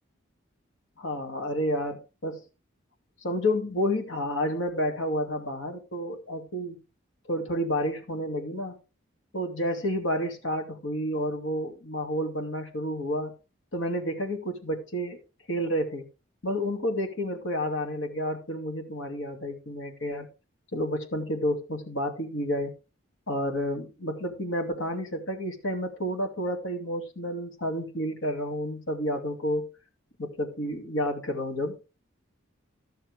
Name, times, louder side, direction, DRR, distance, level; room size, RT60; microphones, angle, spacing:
voice 1, 1.0-2.4 3.2-6.8 7.3-8.8 9.3-13.3 13.7-15.2 15.5-16.0 16.4-20.3 20.7-22.7 23.3-29.7 30.2-31.8, equal, 75° left, 2.4 m, -30 dB
13.0 x 6.5 x 4.8 m
head